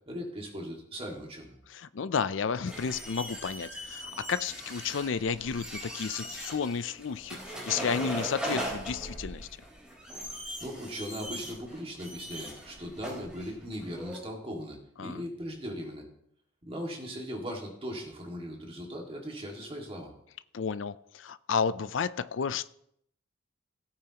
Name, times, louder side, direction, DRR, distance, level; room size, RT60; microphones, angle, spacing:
voice 1, 0.1-1.6 10.6-16.1 16.7-20.1, equal, 30° right, 2.0 m, -39 dB
voice 2, 1.7-9.5 15.0-15.2 20.5-22.7, left 6 dB, 70° left, 0.5 m, -32 dB
sound 1, 2.6-14.2, equal, 5° right, 4.0 m, -39 dB
17.0 x 8.8 x 2.9 m
head